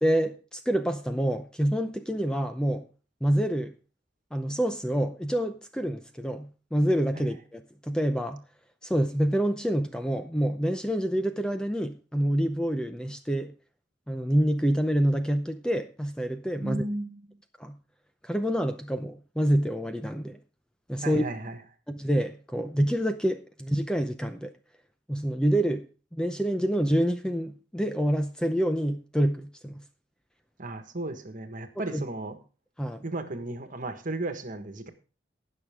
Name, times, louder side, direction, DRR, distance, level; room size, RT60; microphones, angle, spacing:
voice 1, 0.0-2.8 3.2-3.7 4.3-8.4 8.8-13.5 14.1-16.8 17.6-17.7 18.2-20.4 20.9-21.2 21.9-24.5 25.1-25.8 26.1-29.7 31.9-32.0 32.8-33.0, equal, 5° left, 0.6 m, -27 dB
voice 2, 16.6-17.2 21.0-21.6 30.6-32.4 33.0-34.9, right 2 dB, 45° right, 1.5 m, -34 dB
19.0 x 6.5 x 3.6 m
head